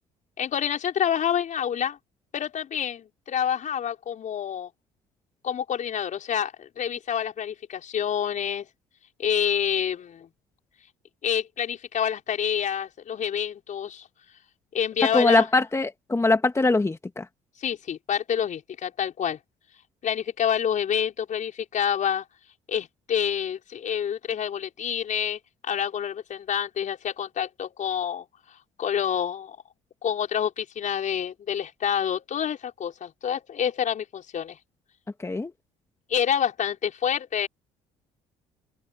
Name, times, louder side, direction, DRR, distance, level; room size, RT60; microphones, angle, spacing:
voice 1, 0.4-2.0 2.3-4.7 5.4-8.7 9.2-10.3 11.2-14.1 14.7-15.5 17.6-19.4 20.0-22.2 22.7-28.3 28.8-29.6 30.0-34.6 36.1-37.5, left 9 dB, 50° left, 5.2 m, -27 dB
voice 2, 15.1-17.3 35.2-35.5, left 2 dB, 15° left, 1.9 m, -22 dB
open air
supercardioid pair, 75°, 16 cm